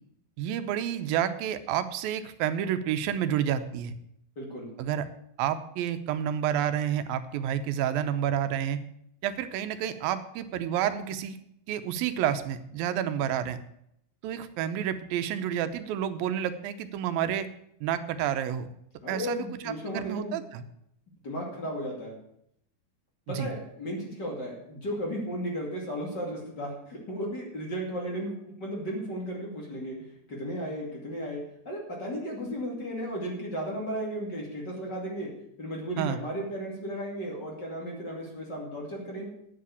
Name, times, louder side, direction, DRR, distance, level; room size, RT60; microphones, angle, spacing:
voice 1, 0.4-3.9 4.8-5.1 5.4-8.8 9.2-11.4 11.7-13.6 14.2-17.5 17.8-18.7 19.1-20.6 23.3-23.5 36.0-36.2, right 10 dB, 85° right, 10 dB, 2.6 m, -29 dB
voice 2, 4.4-4.7 19.0-20.5 21.2-22.2 23.3-35.3 35.6-39.3, equal, 35° left, -1 dB, 2.7 m, -35 dB
9.4 x 7.6 x 8.2 m, 0.75 s
omnidirectional pair, 4.0 m